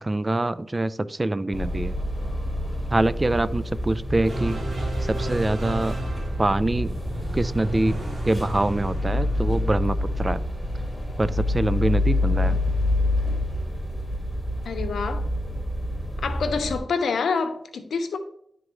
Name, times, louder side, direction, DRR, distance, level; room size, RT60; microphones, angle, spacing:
voice 1, 0.0-1.9 2.9-4.6 5.1-5.9 6.4-7.0 7.3-8.0 8.3-10.4 11.2-12.6, right 2 dB, 30° right, 0.3 m, -24 dB
sound 1, 1.5-16.8, left 1 dB, 20° left, 1.7 m, -27 dB
sound 2, 4.2-12.8, right 1 dB, 50° right, 2.8 m, -34 dB
voice 2, 14.7-15.2 16.2-18.2, left 5 dB, 90° left, 0.7 m, -27 dB
11.0 x 3.7 x 3.1 m
cardioid pair, 60°, 0 cm